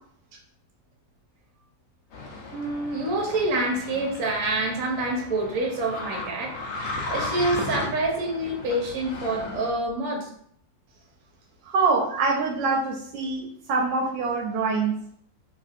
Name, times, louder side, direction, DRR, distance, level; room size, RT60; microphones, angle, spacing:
sound 1, 2.1-9.7, left 2 dB, 70° left, 0.7 m, -35 dB
voice 1, 2.5-6.6 6.9-10.3, right 2 dB, 60° right, 0 dB, 1.1 m, -27 dB
voice 2, 11.6-14.9, right 4 dB, 80° right, -1 dB, 1.2 m, -25 dB
3.0 x 2.6 x 2.4 m, 0.62 s
omnidirectional pair, 2.0 m